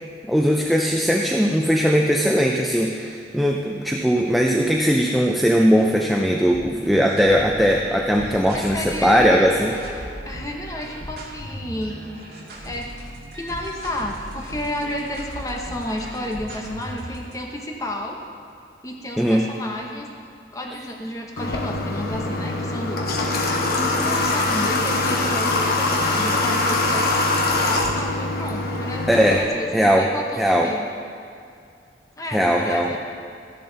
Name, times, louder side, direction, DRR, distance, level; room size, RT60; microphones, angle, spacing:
voice 1, 0.3-9.8 19.2-19.4 29.1-29.5 29.7-30.1 30.4-30.7 32.3-33.0, equal, ahead, 0 dB, 0.5 m, -19 dB
sound 1, 6.5-17.3, right 1 dB, 65° right, 2.0 m, -37 dB
voice 2, 8.5-9.5 10.2-11.9 12.6-12.9 13.3-18.2 18.8-20.1 20.5-23.2 23.9-30.9 32.2-33.0, left 1 dB, 20° left, 0 dB, 0.9 m, -31 dB
Water / Water tap faucet, 21.4-29.4, left 2 dB, 60° left, 1.3 m, -23 dB
14.5 x 10.5 x 4.0 m, 2.4 s
head